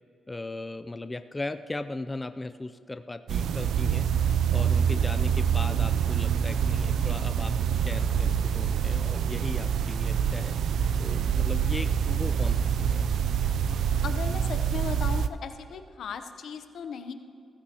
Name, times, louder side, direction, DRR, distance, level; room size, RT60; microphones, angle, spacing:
voice 1, 0.3-4.1 4.5-10.6 11.0-13.1, left 2 dB, 15° left, 10 dB, 0.4 m, -37 dB
sound 1, 3.3-15.3, right 8 dB, 85° right, 0.4 m, -26 dB
voice 2, 14.0-17.1, left 6 dB, 75° left, 8 dB, 0.8 m, -37 dB
16.0 x 15.0 x 2.9 m, 2.5 s
cardioid pair, 105°, 0 cm